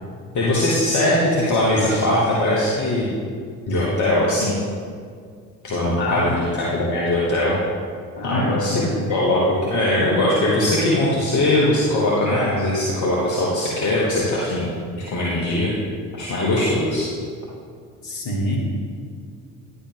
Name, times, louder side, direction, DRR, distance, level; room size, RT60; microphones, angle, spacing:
voice 1, 0.3-3.1 3.6-4.6 5.6-7.6 8.2-8.8 9.1-14.7 14.9-15.7 16.1-17.1, left 1 dB, 40° left, -5 dB, 1.4 m, -20 dB
voice 2, 6.0-6.4 8.2-9.0 18.0-18.6, left 1 dB, 65° left, -2 dB, 1.9 m, -25 dB
10.0 x 7.0 x 3.0 m, 2.1 s
figure-of-eight pair, 55°, 45 cm